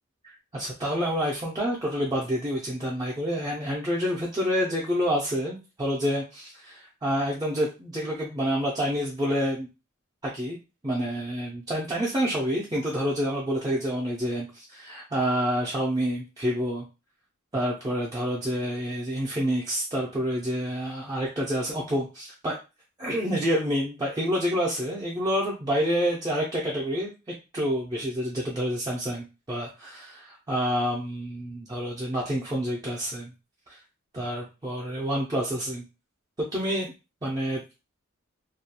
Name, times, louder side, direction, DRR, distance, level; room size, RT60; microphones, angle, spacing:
voice 1, 0.5-9.7 10.2-10.6 10.8-16.9 17.5-22.6 23.0-27.1 27.5-33.3 33.7-33.8 34.1-35.8 36.5-36.9 37.2-37.6, equal, 20° right, -5 dB, 0.4 m, -28 dB
2.3 x 2.2 x 2.7 m, 0.29 s
head